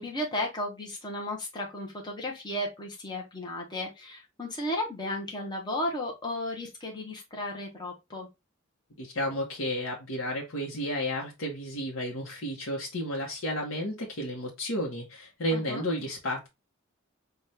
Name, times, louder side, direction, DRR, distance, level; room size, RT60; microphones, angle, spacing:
voice 1, 0.0-8.3 15.5-15.8, left 1 dB, 20° left, 0.8 m, -34 dB
voice 2, 9.0-16.5, equal, 70° left, 0.9 m, -32 dB
4.1 x 2.3 x 3.1 m
head